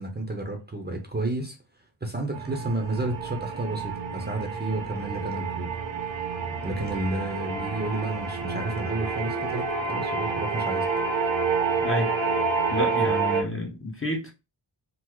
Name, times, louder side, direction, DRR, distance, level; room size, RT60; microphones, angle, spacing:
voice 1, 0.0-1.6 2.0-5.7 6.6-10.9, right 2 dB, 20° right, 0.7 m, -31 dB
sound 1, 2.3-13.4, right 4 dB, 80° right, 0.8 m, -28 dB
voice 2, 11.8-12.1 12.7-14.3, equal, 30° left, 0.8 m, -29 dB
3.8 x 2.0 x 3.0 m
wide cardioid pair, 80°, 46 cm